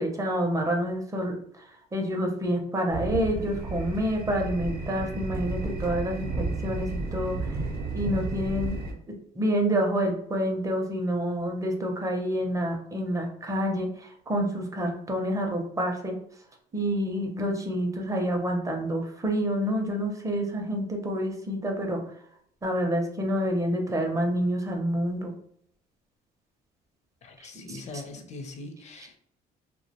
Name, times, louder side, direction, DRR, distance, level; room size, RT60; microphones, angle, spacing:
voice 1, 0.0-7.6 7.9-8.7 9.4-16.1 16.7-22.0 22.6-25.3 27.5-27.8, equal, 20° right, 2 dB, 0.5 m, -28 dB
sound 1, 2.9-8.9, right 3 dB, 65° right, 0.6 m, -32 dB
voice 2, 27.2-29.2, left 3 dB, 40° left, 5 dB, 0.5 m, -41 dB
2.3 x 2.1 x 2.7 m, 0.67 s
cardioid pair, 110°, 17 cm